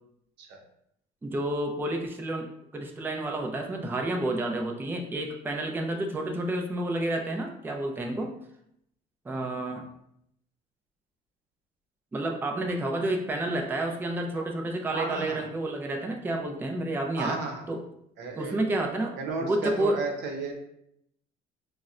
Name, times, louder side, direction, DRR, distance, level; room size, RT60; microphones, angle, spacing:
voice 1, 1.2-2.5 2.7-8.3 9.3-9.9 12.1-17.4 17.7-17.8 18.4-19.2 19.4-20.0, right 1 dB, 10° right, 2 dB, 0.4 m, -30 dB
voice 2, 14.9-15.4 17.2-17.6 18.2-18.6 19.2-20.5, right 3 dB, 85° right, 2 dB, 0.6 m, -33 dB
4.0 x 2.0 x 2.4 m, 0.74 s
cardioid pair, 110°, 17 cm